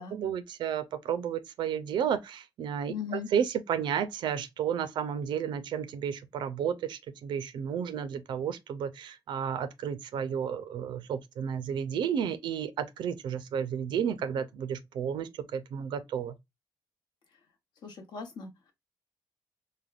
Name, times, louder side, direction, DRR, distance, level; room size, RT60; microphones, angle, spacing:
voice 1, 0.1-16.3, right 8 dB, 90° right, 0.4 m, -32 dB
voice 2, 2.9-3.3 17.8-18.7, left 7 dB, 75° left, 0.9 m, -39 dB
3.3 x 2.1 x 2.3 m
cardioid pair, 125°, 8 cm